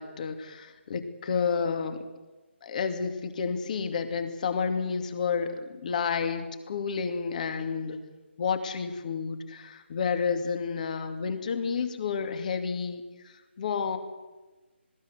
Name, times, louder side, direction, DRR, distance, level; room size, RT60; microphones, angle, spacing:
voice 1, 0.0-2.0 2.6-8.0 8.4-14.0, left 5 dB, 40° left, 7 dB, 2.5 m, -30 dB
20.0 x 18.0 x 8.2 m, 1.2 s
figure-of-eight pair, 155°, 6 cm